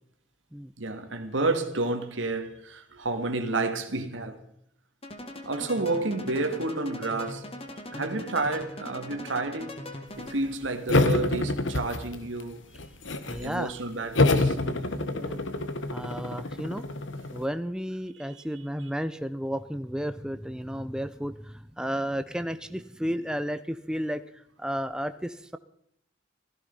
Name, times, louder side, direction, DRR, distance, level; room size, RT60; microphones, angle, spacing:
voice 1, 0.8-4.4 5.5-7.4 7.9-9.8 10.2-12.6 13.4-14.6 18.3-18.4, right 2 dB, 90° right, 2.1 m, -30 dB
sound 1, 5.0-10.7, left 1 dB, 30° left, 2.1 m, -41 dB
voice 2, 7.9-8.2 13.3-13.7 15.0-15.4 15.9-16.8 17.3-24.2 24.6-25.6, equal, 5° right, 0.6 m, -33 dB
sound 2, 10.9-12.4 12.8-13.5 14.2-17.4, left 2 dB, 85° left, 1.5 m, -26 dB
16.5 x 15.0 x 5.5 m
head